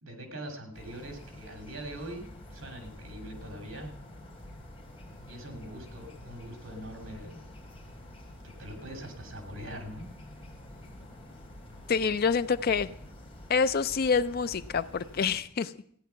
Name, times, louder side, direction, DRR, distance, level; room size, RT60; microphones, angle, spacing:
voice 1, 0.0-3.9 5.3-7.4 8.6-10.1, right 1 dB, 75° right, 4 dB, 2.7 m, -42 dB
sound 1, 0.7-15.4, left 1 dB, 30° left, 2.6 m, -48 dB
voice 2, 11.9-12.9 13.5-15.7, left 5 dB, 50° left, 14 dB, 0.5 m, -27 dB
15.0 x 9.3 x 5.7 m, 0.63 s
head